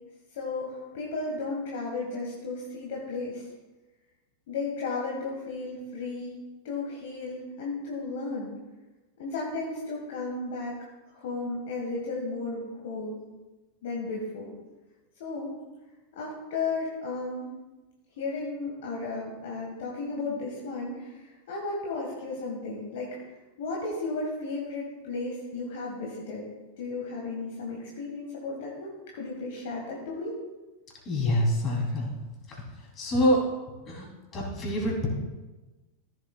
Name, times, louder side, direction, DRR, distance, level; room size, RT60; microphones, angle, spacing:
voice 1, 0.3-3.5 4.5-8.5 9.2-10.8 11.1-13.2 13.8-14.5 15.2-15.5 16.1-17.5 18.2-23.2 23.6-26.4 26.8-30.3, left 3 dB, 55° left, -2 dB, 1.7 m, -34 dB
voice 2, 31.0-32.1 32.5-32.6 33.0-33.4 33.8-34.1 34.3-35.1, left 1 dB, 30° left, -1 dB, 3.3 m, -25 dB
14.5 x 7.9 x 2.4 m, 1.1 s
figure-of-eight pair, 90°, 0 cm